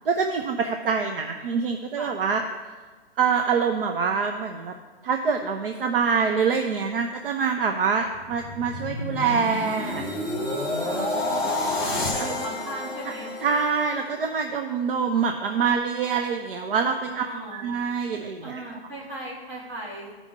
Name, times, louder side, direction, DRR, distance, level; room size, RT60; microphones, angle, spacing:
voice 1, 0.1-2.4 3.2-4.7 5.0-10.0 11.4-11.6 12.2-12.3 13.4-17.2 17.5-18.6, right 6 dB, 60° right, 5 dB, 0.7 m, -25 dB
voice 2, 2.0-2.4 10.8-11.1 11.5-13.3 17.0-17.6 18.4-20.1, right 1 dB, 35° right, -6 dB, 2.9 m, -38 dB
sound 1, 8.1-14.3 14.8-15.0, left 2 dB, ahead, 0.7 m, -30 dB
13.5 x 5.3 x 3.7 m, 1.4 s
hypercardioid pair, 165°, 31 cm